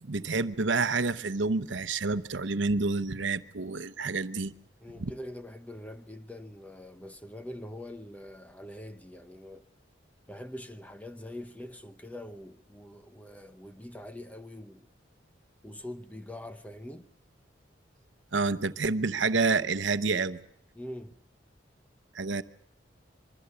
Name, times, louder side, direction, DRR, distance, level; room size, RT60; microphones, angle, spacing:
voice 1, 0.0-4.5 5.0-5.1 18.3-20.4 22.1-22.4, right 4 dB, 75° right, 0.9 m, -28 dB
voice 2, 4.8-9.6 10.3-14.9 15.6-17.1 20.7-21.2, left 1 dB, 10° left, 0.9 m, -43 dB
25.0 x 23.5 x 6.9 m
head